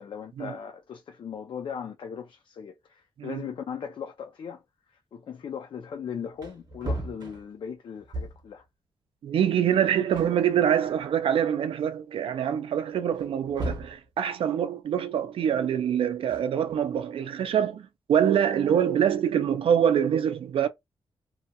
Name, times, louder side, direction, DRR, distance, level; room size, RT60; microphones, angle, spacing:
voice 1, 0.0-4.6 5.1-8.6, left 7 dB, 60° left, 0.4 m, -38 dB
Wood, 5.9-6.0 6.3-8.6 9.7-9.8 10.1-11.3 11.8-11.9 13.1-14.1 16.1-17.0, right 1 dB, 50° right, 0.8 m, -37 dB
voice 2, 9.2-20.7, right 9 dB, 85° right, 0.4 m, -25 dB
2.7 x 2.1 x 2.7 m
wide cardioid pair, 155°, 9 cm